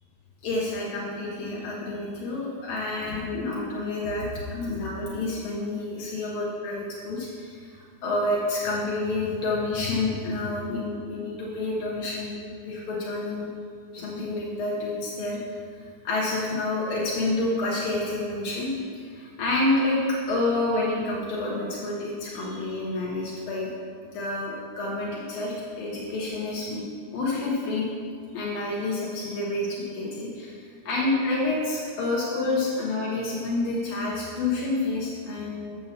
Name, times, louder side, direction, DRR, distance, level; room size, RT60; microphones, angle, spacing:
voice 1, 0.4-12.4 12.7-13.5 13.9-15.4 15.7-20.0 20.3-23.7 24.1-26.9 27.1-27.9 28.3-35.8, left 2 dB, 80° left, -5 dB, 2.0 m, -29 dB
7.1 x 4.7 x 7.0 m, 2.1 s
omnidirectional pair, 2.4 m